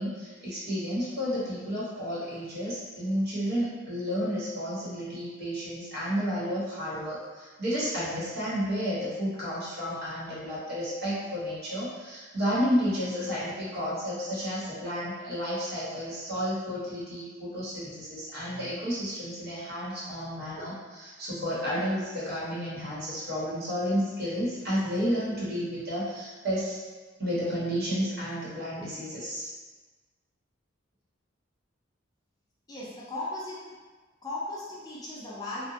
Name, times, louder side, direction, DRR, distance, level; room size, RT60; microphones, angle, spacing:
voice 1, 0.0-26.8 27.2-29.5, equal, 50° right, -9 dB, 1.0 m, -31 dB
voice 2, 32.7-33.7 34.2-35.7, left 2 dB, 20° left, -7 dB, 0.4 m, -36 dB
2.8 x 2.1 x 2.7 m, 1.3 s
head